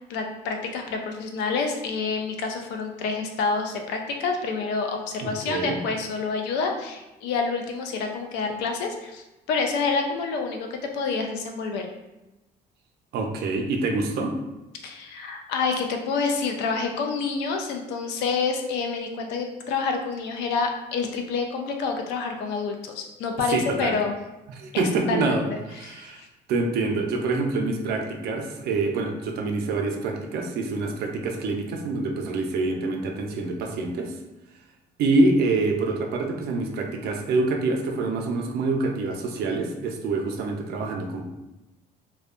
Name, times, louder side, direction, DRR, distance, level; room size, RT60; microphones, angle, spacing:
voice 1, 0.1-10.7 10.9-11.9 14.8-24.2 24.7-25.4 25.8-26.3, left 4 dB, 90° left, 4 dB, 0.4 m, -28 dB
voice 2, 5.2-5.8 13.1-14.3 23.5-23.9 24.6-26.2 26.5-34.2 35.0-41.2, right 3 dB, 70° right, 3 dB, 0.5 m, -26 dB
2.6 x 2.1 x 2.4 m, 1.0 s
cardioid pair, 110°, 17 cm